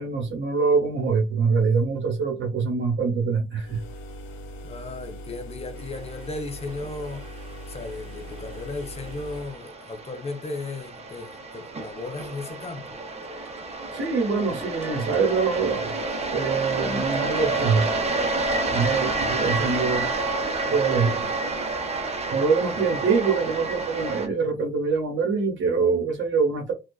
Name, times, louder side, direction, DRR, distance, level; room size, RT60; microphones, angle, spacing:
voice 1, 0.0-3.8 13.9-15.9 16.3-17.9 18.7-20.1 20.7-21.3 22.3-26.7, right 5 dB, 75° right, 1.0 m, -24 dB
sound 1, 3.6-9.6, equal, 80° left, 0.6 m, -40 dB
voice 2, 4.6-7.2 7.7-13.0 22.6-23.0, left 3 dB, 30° left, 0.6 m, -35 dB
sound 2, 5.9-24.3, right 3 dB, 30° right, 0.8 m, -30 dB
sound 3, 13.1-20.3, right 3 dB, 10° right, 0.4 m, -42 dB
2.4 x 2.3 x 2.3 m
cardioid pair, 90°, 20 cm